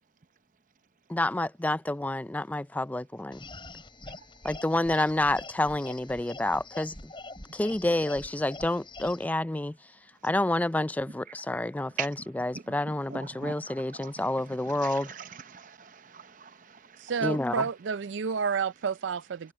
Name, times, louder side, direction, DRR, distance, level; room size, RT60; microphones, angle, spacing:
voice 1, 1.1-3.4 4.4-7.1 7.5-9.8 10.2-15.1 17.2-17.6, left 1 dB, 10° left, 0.3 m, -29 dB
sound 1, 3.3-9.2, left 2 dB, 25° left, 6.9 m, -45 dB
voice 2, 13.1-16.8, right 7 dB, 45° right, 0.8 m, -42 dB
voice 3, 17.0-19.5, right 6 dB, 80° right, 0.4 m, -30 dB
head